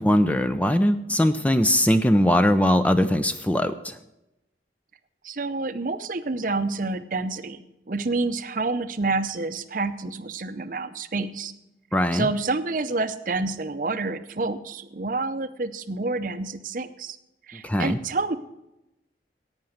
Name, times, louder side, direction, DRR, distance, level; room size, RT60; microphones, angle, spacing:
voice 1, 0.0-3.9 11.9-12.3 17.6-18.0, left 1 dB, 10° left, 10 dB, 0.4 m, -21 dB
voice 2, 5.2-11.5 12.1-17.2 17.5-18.4, right 3 dB, 45° right, 12 dB, 0.7 m, -28 dB
11.5 x 9.0 x 6.4 m, 0.91 s
head